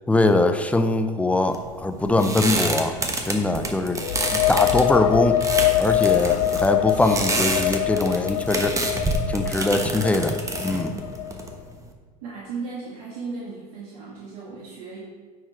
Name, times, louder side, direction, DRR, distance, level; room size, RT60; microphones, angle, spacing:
voice 1, 0.1-3.0 3.3-4.0 4.3-5.4 5.8-8.8 9.3-10.4 10.6-10.9, left 2 dB, 5° left, 8 dB, 0.6 m, -22 dB
sound 1, 1.5-11.9, right 2 dB, 15° right, 1.1 m, -28 dB
sound 2, 3.9-11.5, left 14 dB, 65° left, 0.4 m, -24 dB
voice 2, 10.9-11.2 12.2-15.0, right 4 dB, 70° right, -6 dB, 1.9 m, -36 dB
9.2 x 4.8 x 4.3 m, 1.5 s
hypercardioid pair, 95°, 20 cm